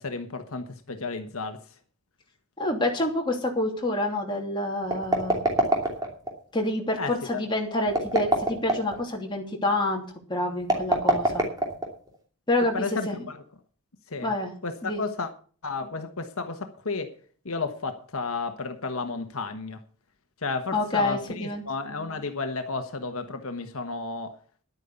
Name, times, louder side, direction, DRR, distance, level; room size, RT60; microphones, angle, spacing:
voice 1, 0.0-1.6 7.0-7.4 12.7-13.4 14.1-14.3 14.6-15.3 15.6-17.1 17.4-19.8 20.4-24.3, left 3 dB, 70° left, 1.3 m, -32 dB
voice 2, 2.6-5.4 6.5-10.0 10.3-11.4 12.5-12.8 13.1-13.2 14.2-14.5 14.8-15.0 20.7-21.6, left 1 dB, 20° left, 2.9 m, -27 dB
sound 1, 4.8-6.3 7.9-9.0 10.6-12.2, right 1 dB, 15° right, 2.8 m, -24 dB
11.0 x 9.2 x 6.9 m
head